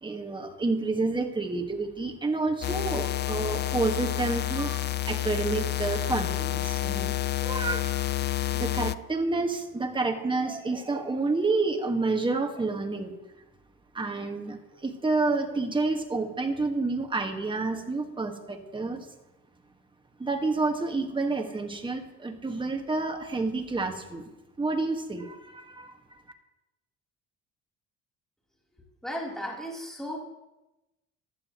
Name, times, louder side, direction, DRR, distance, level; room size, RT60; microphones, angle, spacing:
voice 1, 0.0-7.9 8.5-13.2 13.9-19.1 20.2-24.3 24.6-25.9, right 3 dB, 15° right, 4 dB, 1.7 m, -29 dB
sound 1, 2.6-9.0, left 14 dB, 35° left, 0.4 m, -29 dB
voice 2, 29.0-30.2, equal, ahead, -4 dB, 3.7 m, -35 dB
16.0 x 11.5 x 3.1 m, 1.0 s
supercardioid pair, 90°, 30 cm